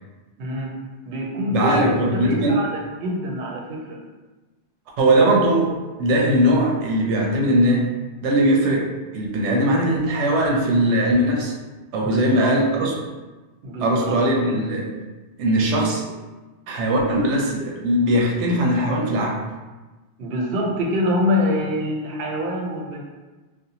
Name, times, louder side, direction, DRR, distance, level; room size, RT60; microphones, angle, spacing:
voice 1, 0.4-0.8 1.1-4.0 12.0-12.5 12.8-12.9 13.6-14.1 14.5-14.6 20.2-23.0, left 1 dB, 65° right, -1 dB, 0.7 m, -25 dB
voice 2, 1.5-2.6 5.0-5.7 6.0-7.9 8.2-11.5 11.9-12.9 13.8-14.9 15.4-16.0 16.7-19.4, right 1 dB, 90° right, -1 dB, 0.9 m, -20 dB
2.6 x 2.0 x 2.7 m, 1.2 s
omnidirectional pair, 1.1 m